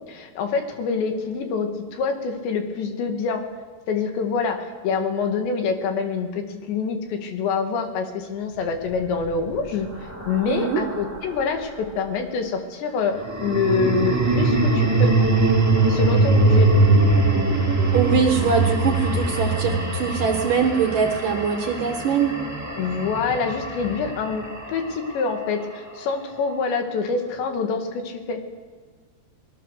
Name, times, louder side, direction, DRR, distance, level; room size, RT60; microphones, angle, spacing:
voice 1, 0.1-3.4 3.9-9.9 10.3-15.1 15.9-16.7 22.8-28.4, left 5 dB, 75° left, 5 dB, 4.2 m, -26 dB
sound 1, 9.0-11.5 13.1-25.4, right 2 dB, 10° right, 0.8 m, -22 dB
voice 2, 10.5-10.8 17.9-22.4, right 6 dB, 60° right, 4 dB, 2.4 m, -22 dB
25.5 x 20.5 x 6.7 m, 1.4 s
omnidirectional pair, 5.3 m